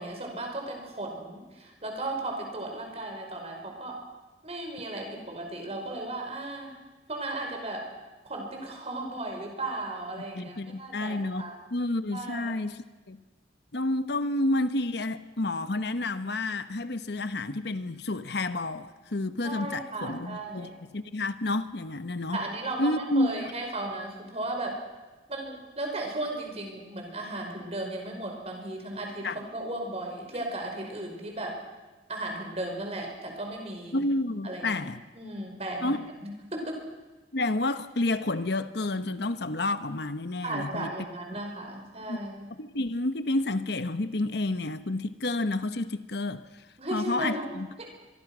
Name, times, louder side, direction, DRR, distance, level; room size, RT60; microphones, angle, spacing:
voice 1, 0.0-4.0 4.4-6.7 7.1-7.9 8.3-11.6 12.1-12.6 19.4-20.8 22.3-24.8 25.3-31.6 32.1-34.1 34.4-34.8 35.1-36.8 40.4-42.4 46.8-47.9, right 2 dB, 35° right, 5.4 m, -36 dB
voice 2, 10.4-11.4 11.7-13.2 13.7-22.4 22.8-23.5 29.2-29.4 33.9-35.0 35.8-36.0 37.3-40.9 42.1-42.2 42.6-46.4 46.9-47.7, left 2 dB, 65° left, 1.1 m, -30 dB
24.5 x 23.5 x 6.2 m
head